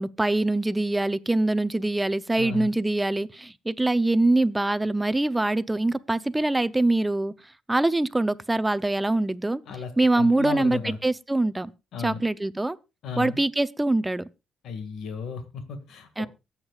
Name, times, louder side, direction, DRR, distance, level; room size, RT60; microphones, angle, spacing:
voice 1, 0.0-7.3 7.7-11.7 12.0-12.8 13.2-14.2 16.2-16.3, right 2 dB, 10° right, 0.6 m, -24 dB
voice 2, 2.4-2.7 9.7-11.0 11.9-12.2 13.0-13.4 14.6-16.3, left 5 dB, 75° left, 2.0 m, -34 dB
23.0 x 8.2 x 2.4 m
cardioid pair, 90°, 0 cm